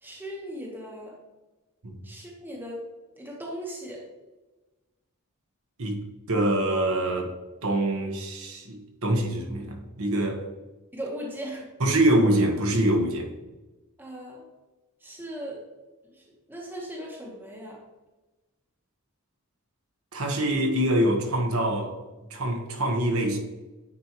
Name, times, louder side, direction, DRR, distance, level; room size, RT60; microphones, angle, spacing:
voice 1, 0.0-1.2 2.0-2.8 3.2-4.0 10.9-11.7 14.0-14.5 15.0-15.6 16.1-17.8, equal, 10° right, -2 dB, 1.1 m, -38 dB
voice 2, 6.3-7.3 7.6-10.4 11.8-13.3 20.1-21.9 22.3-23.4, right 1 dB, 70° right, 2 dB, 1.2 m, -24 dB
9.5 x 4.5 x 3.0 m, 1.1 s
head